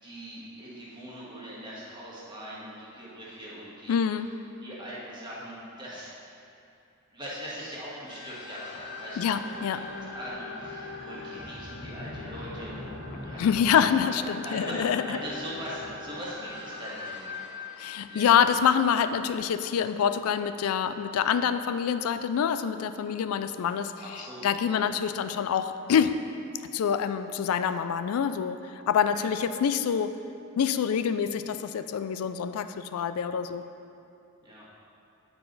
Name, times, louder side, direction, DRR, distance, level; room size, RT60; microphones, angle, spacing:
voice 1, 0.0-4.0 4.6-6.4 7.1-9.4 9.8-12.9 13.2-13.6 14.0-14.1 14.4-17.5 18.1-18.3 24.0-25.1 29.1-29.3 34.4-34.7, equal, 20° right, -7 dB, 1.6 m, -41 dB
voice 2, 3.9-4.3 9.2-9.9 13.4-15.2 17.8-26.2 26.7-30.1 30.6-33.6, left 7 dB, 80° left, 11 dB, 0.3 m, -26 dB
sound 1, 8.1-19.3, left 3 dB, 55° left, 1.1 m, -41 dB
9.3 x 4.6 x 4.0 m, 2.7 s
head